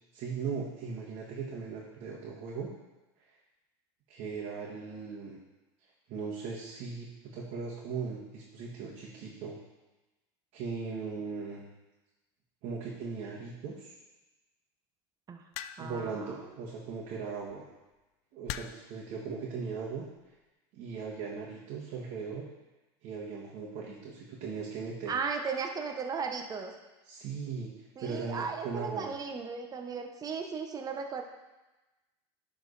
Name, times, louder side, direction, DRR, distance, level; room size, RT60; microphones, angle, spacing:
voice 1, 0.1-2.7 4.1-5.4 6.1-9.6 10.5-11.7 12.6-13.9 15.8-17.6 18.3-20.1 20.7-22.5 23.0-25.1 27.0-27.7 28.0-29.1, right 5 dB, 60° right, -5 dB, 1.6 m, -38 dB
sound 1, 15.5-16.1 17.3-17.5 18.5-19.0 19.9-20.2, left 12 dB, 65° left, 0.4 m, -41 dB
voice 2, 15.8-16.4 25.1-26.7 28.0-31.2, right 5 dB, 25° right, 4 dB, 0.9 m, -36 dB
11.0 x 4.0 x 4.1 m, 1.1 s
supercardioid pair, 105°, 14 cm